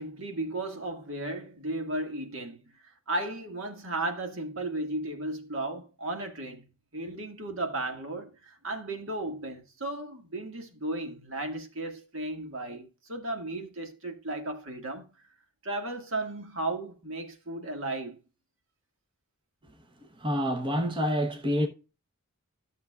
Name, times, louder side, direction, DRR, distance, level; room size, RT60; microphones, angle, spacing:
voice 1, 0.0-2.7 3.1-6.6 6.9-15.1 15.6-18.2, right 2 dB, 65° right, 1.9 m, -35 dB
voice 2, 20.2-21.7, equal, 25° right, 1.0 m, -27 dB
13.5 x 6.6 x 2.4 m
head